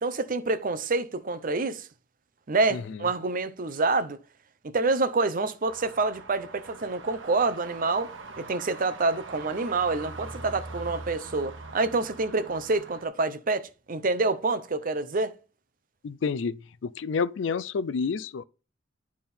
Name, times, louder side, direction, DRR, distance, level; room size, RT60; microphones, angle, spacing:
voice 1, 0.0-1.9 2.5-4.2 4.6-8.1 8.4-15.3, right 3 dB, 45° right, 0.7 m, -27 dB
sound 1, 5.6-13.1, right 3 dB, 80° right, 1.0 m, -42 dB
voice 2, 16.0-18.4, left 5 dB, 70° left, 0.4 m, -29 dB
10.5 x 3.6 x 4.3 m
head